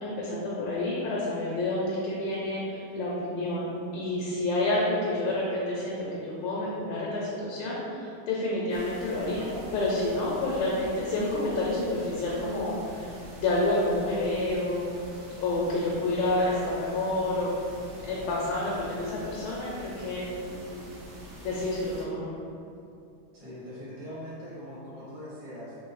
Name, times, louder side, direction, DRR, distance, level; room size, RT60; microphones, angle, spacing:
voice 1, 0.0-9.4 9.7-13.1 13.4-14.9 15.4-17.5 18.0-20.8 21.4-22.3, left 2 dB, 75° left, -5 dB, 1.2 m, -29 dB
sound 1, 8.7-22.0, equal, 75° right, 1.5 m, -46 dB
voice 2, 9.3-9.7 23.3-25.8, equal, 25° right, -10 dB, 0.8 m, -41 dB
3.7 x 3.1 x 3.0 m, 2.6 s
omnidirectional pair, 2.3 m